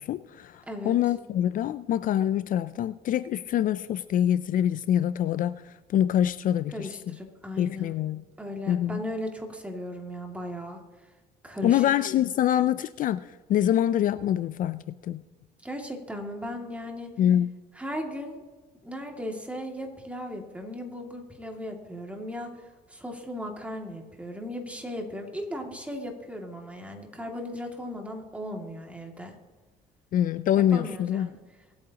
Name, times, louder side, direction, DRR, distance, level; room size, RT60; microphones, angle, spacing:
voice 1, 0.0-7.2 7.6-8.2 8.7-9.0 11.6-15.2 17.2-17.5 30.1-31.3, left 11 dB, 55° left, 14 dB, 0.4 m, -25 dB
voice 2, 0.7-1.0 6.7-8.0 8.4-10.8 11.4-11.8 15.6-17.1 17.8-18.4 18.8-22.5 22.9-29.3 30.7-31.4, equal, 10° right, 1 dB, 2.3 m, -37 dB
24.5 x 8.8 x 2.9 m, 1.3 s
cardioid pair, 110°, 17 cm